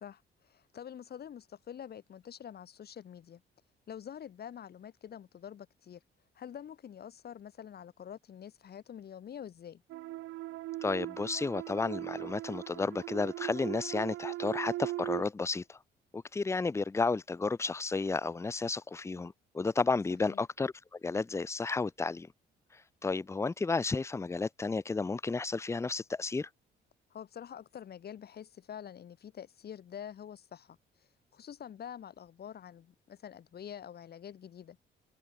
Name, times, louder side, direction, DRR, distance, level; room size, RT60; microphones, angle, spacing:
voice 1, 0.0-3.4 3.9-6.0 6.3-9.8 20.2-20.5 27.1-30.8 31.3-34.8, left 9 dB, 55° left, 1.2 m, -46 dB
sound 1, 9.9-15.2, right 16 dB, 85° right, 0.7 m, -39 dB
voice 2, 10.8-15.8 16.1-20.7 21.0-22.3 23.0-26.5, left 3 dB, 15° left, 0.5 m, -32 dB
cardioid pair, 90°, 20 cm